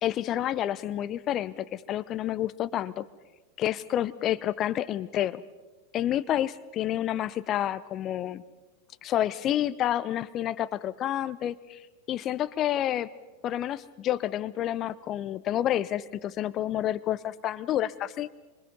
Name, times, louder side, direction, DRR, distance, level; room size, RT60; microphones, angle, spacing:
voice 1, 0.0-3.0 3.6-5.4 5.9-8.4 9.0-11.8 12.1-13.1 13.4-18.3, left 12 dB, 30° left, 15 dB, 0.8 m, -29 dB
26.0 x 25.5 x 5.5 m, 1.2 s
figure-of-eight pair, 90°, 0 cm